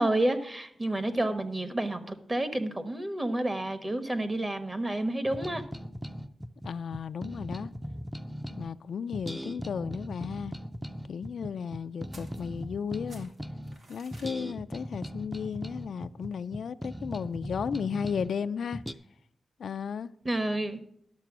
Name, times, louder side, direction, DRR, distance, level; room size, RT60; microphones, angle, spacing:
voice 1, 0.0-5.6 20.2-20.8, right 1 dB, 25° right, 1.0 m, -29 dB
sound 1, 5.2-8.7 9.1-13.8 14.1-18.3 18.7-18.9, equal, ahead, 0.5 m, -39 dB
voice 2, 6.6-7.7 8.5-10.5 11.1-13.3 13.9-18.8 19.6-20.1, left 6 dB, 80° left, 0.3 m, -34 dB
sound 2, 12.1-12.8 13.1-14.4, right 2 dB, 75° right, 2.0 m, -54 dB
11.5 x 6.7 x 6.1 m
wide cardioid pair, 100°, 0 cm